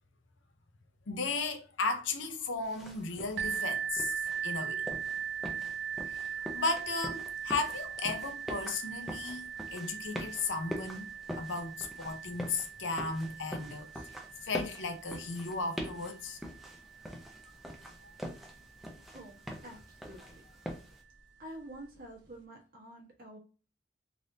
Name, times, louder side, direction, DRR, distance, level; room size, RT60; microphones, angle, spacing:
voice 1, 1.1-4.8 6.0-11.1 11.4-13.9 14.4-16.4 18.0-18.1, left 3 dB, 70° left, 0.6 m, -35 dB
sound 1, 2.6-21.0, equal, ahead, 0.5 m, -44 dB
sound 2, 3.4-18.9 19.7-19.8 20.3-20.4, right 8 dB, 65° right, 0.4 m, -40 dB
voice 2, 19.1-19.4 19.6-20.4 21.4-23.4, right 1 dB, 45° right, 1.0 m, -48 dB
3.4 x 2.5 x 2.7 m
head